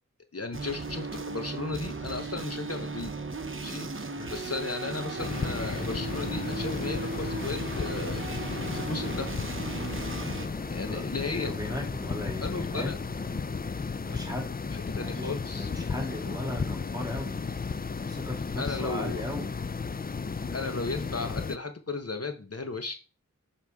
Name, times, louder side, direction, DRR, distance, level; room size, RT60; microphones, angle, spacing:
voice 1, 0.3-3.2 3.6-9.3 10.7-11.5 12.4-13.0 14.7-15.9 18.6-19.2 20.5-22.9, left 3 dB, 50° left, 7 dB, 1.1 m, -35 dB
sound 1, 0.5-10.5, right 4 dB, 40° right, 0.8 m, -36 dB
sound 2, 1.4-13.7, equal, 15° left, 3.1 m, -47 dB
sound 3, 5.2-21.6, left 5 dB, 30° left, 0.4 m, -34 dB
voice 2, 10.8-13.0 14.0-14.6 14.9-17.4 18.0-19.5, left 1 dB, 10° right, 1 dB, 2.8 m, -38 dB
8.1 x 5.1 x 3.6 m, 0.32 s
wide cardioid pair, 50°, 31 cm